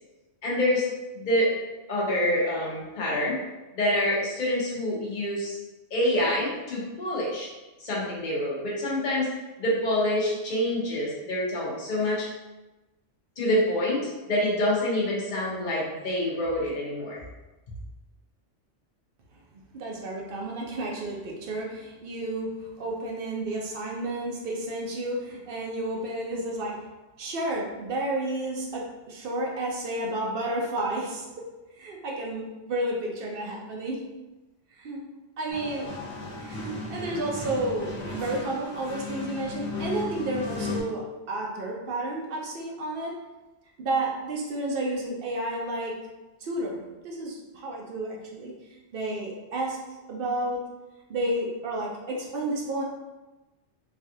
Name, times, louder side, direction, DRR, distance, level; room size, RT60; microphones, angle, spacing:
voice 1, 0.4-0.9 1.1-1.5 1.9-3.4 3.7-5.6 5.9-7.5 7.8-9.3 9.6-12.3 13.4-17.2, left 1 dB, 45° left, -6 dB, 0.9 m, -26 dB
voice 2, 19.7-26.8 27.2-31.5 31.8-34.0 34.8-35.0 35.4-35.9 36.4-43.1 43.8-46.0 46.4-48.5 48.9-49.8 50.1-50.6 51.1-52.8, right 1 dB, 55° right, -1 dB, 0.7 m, -31 dB
sound 1, 35.5-40.8, left 3 dB, 65° left, 1.2 m, -35 dB
3.3 x 2.4 x 2.7 m, 1.1 s
omnidirectional pair, 1.2 m